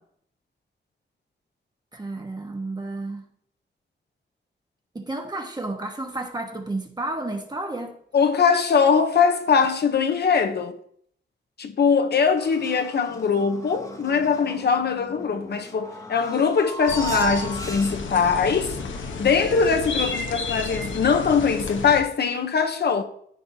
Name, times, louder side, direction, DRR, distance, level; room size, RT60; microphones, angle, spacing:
voice 1, 1.9-3.2 4.9-8.0, right 2 dB, 20° right, 1.2 m, -31 dB
voice 2, 8.1-10.7 11.6-18.8 19.2-23.0, left 5 dB, 60° left, 0.8 m, -21 dB
sound 1, 12.4-18.3, right 3 dB, 15° left, 1.0 m, -37 dB
sound 2, 16.9-22.0, left 4 dB, 80° left, 1.0 m, -31 dB
14.0 x 5.5 x 2.7 m
wide cardioid pair, 160°, 20 cm